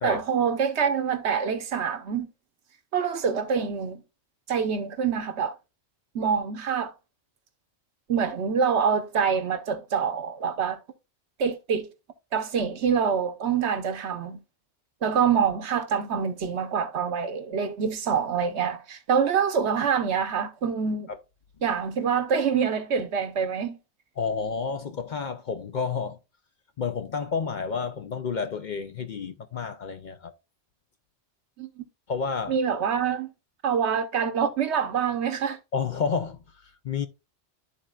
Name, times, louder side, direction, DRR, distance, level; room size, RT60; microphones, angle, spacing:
voice 1, 0.0-2.3 2.9-4.0 4.5-5.5 6.1-6.9 8.1-10.8 11.4-11.9 12.3-14.4 15.0-21.1 21.6-23.8 31.6-31.8 32.5-33.3 33.6-35.6, right 6 dB, 75° right, 1.2 m, -26 dB
voice 2, 24.2-26.2 26.8-30.3 32.1-32.8 35.7-37.1, left 5 dB, 55° left, 0.6 m, -30 dB
12.5 x 4.3 x 2.4 m
omnidirectional pair, 1.2 m